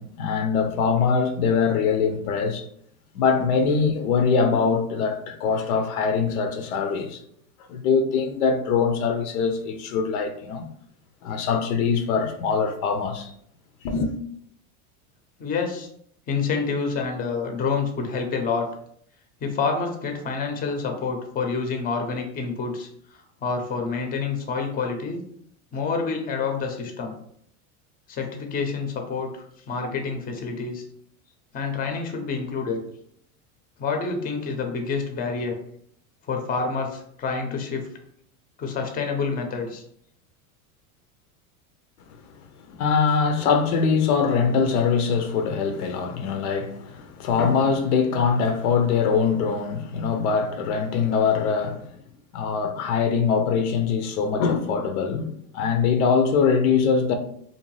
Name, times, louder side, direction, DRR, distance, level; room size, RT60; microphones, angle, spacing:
voice 1, 0.0-2.6 3.1-7.2 7.7-10.6 11.2-13.3 13.8-14.1 42.6-51.9 52.3-57.1, left 5 dB, 85° left, 0.6 m, -23 dB
voice 2, 15.4-15.9 16.3-18.7 19.4-25.2 25.7-27.1 28.1-30.8 31.5-32.8 33.8-35.5 36.3-37.8 38.6-39.8, left 5 dB, 20° left, 0.5 m, -28 dB
2.6 x 2.1 x 3.1 m
supercardioid pair, 105°, 42 cm